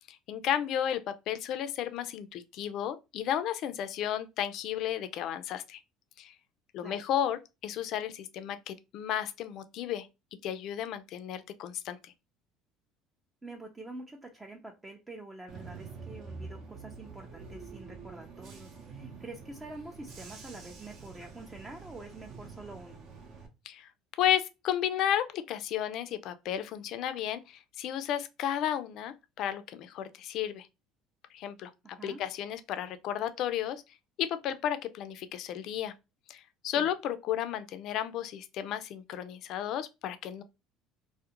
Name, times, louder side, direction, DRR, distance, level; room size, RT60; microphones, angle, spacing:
voice 1, 0.1-1.0 1.3-5.8 6.2-6.3 6.7-10.1 10.4-12.1 23.7-23.9 24.2-30.7 31.3-31.7 32.0-33.8 34.2-35.9 36.3-40.4, left 10 dB, 60° left, 0.3 m, -33 dB
voice 2, 13.4-23.0 31.8-32.2 36.8-36.9, right 2 dB, 15° right, 0.4 m, -46 dB
Bus / Engine, 15.5-23.5, right 4 dB, 55° right, 0.6 m, -47 dB
2.4 x 2.0 x 2.8 m
supercardioid pair, 110°, 0 cm